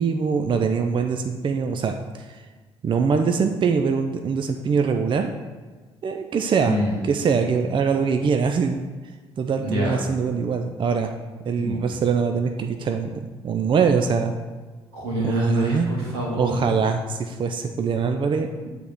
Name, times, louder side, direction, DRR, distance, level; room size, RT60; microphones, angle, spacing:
voice 1, 0.0-2.4 2.8-5.3 6.0-6.7 7.0-8.8 9.4-11.1 11.5-14.4 15.2-15.9 16.3-18.5, right 5 dB, 40° right, 5 dB, 0.5 m, -23 dB
voice 2, 6.6-6.9 9.6-10.0 11.6-11.8 14.9-16.6 18.6-18.7, equal, 85° right, -5 dB, 1.7 m, -26 dB
8.1 x 3.6 x 4.4 m, 1.3 s
hypercardioid pair, 50°, 13 cm